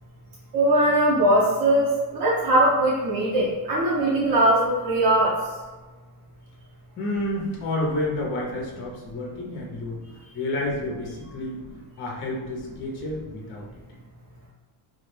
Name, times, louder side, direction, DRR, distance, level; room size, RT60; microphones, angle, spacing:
voice 1, 0.5-5.4, right 1 dB, 45° right, -5 dB, 0.5 m, -20 dB
voice 2, 7.0-10.0 10.3-11.6 12.0-13.7, left 1 dB, 25° left, -2 dB, 0.4 m, -30 dB
2.2 x 2.1 x 3.0 m, 1.3 s
cardioid pair, 140°, 50 cm